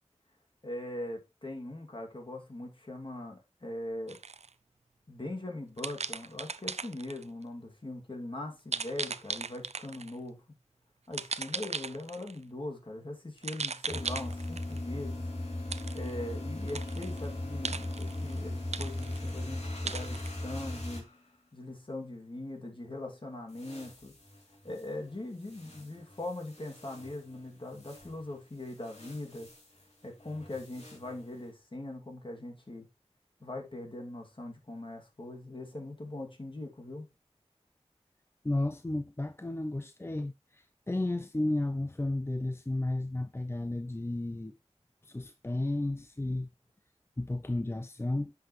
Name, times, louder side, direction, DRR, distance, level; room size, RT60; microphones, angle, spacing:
voice 1, 0.6-4.2 5.1-10.4 11.1-15.2 15.9-21.0 21.5-24.1 24.6-29.5 30.0-32.8 33.4-37.1, left 1 dB, 45° left, 2.5 m, -41 dB
sound 1, 4.1-4.5 5.8-7.2 8.7-10.2 11.1-12.4 13.4-14.8 15.7-16.1 16.6-17.3 17.6-18.4 18.7-19.4 19.9-20.3, right 5 dB, 70° right, 0.5 m, -37 dB
sound 2, 13.9-21.1 23.5-24.8 25.4-27.3 27.7-28.1 28.7-29.8 30.2-31.2, left 1 dB, 70° left, 3.0 m, -39 dB
voice 2, 38.4-44.5 45.0-46.5 47.2-48.3, left 2 dB, 20° left, 0.5 m, -33 dB
10.0 x 6.0 x 3.2 m
wide cardioid pair, 50°, 12 cm